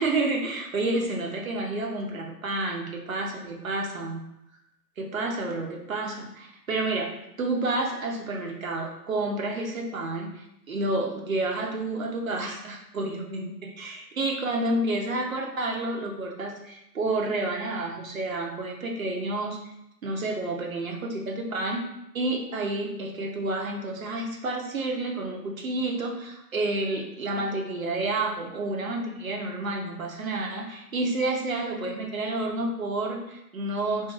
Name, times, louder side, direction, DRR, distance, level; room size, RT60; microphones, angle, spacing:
voice 1, 0.0-4.2 5.0-19.6 20.0-21.8 22.1-34.1, right 2 dB, 55° right, 1 dB, 0.6 m, -30 dB
2.5 x 2.0 x 3.7 m, 0.84 s
hypercardioid pair, 170°, 50 cm